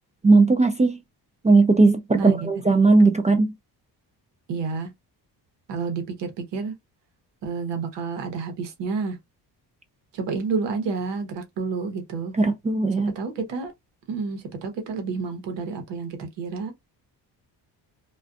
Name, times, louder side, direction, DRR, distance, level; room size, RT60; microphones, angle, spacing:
voice 1, 0.2-1.0 1.4-3.5 12.3-13.1, right 3 dB, 20° right, 0.3 m, -18 dB
voice 2, 4.5-4.9 5.7-6.7 7.4-9.2 10.1-12.3 13.2-13.7 14.1-16.7, right 4 dB, 90° right, 0.9 m, -29 dB
2.5 x 2.4 x 2.3 m
cardioid pair, 90°, 42 cm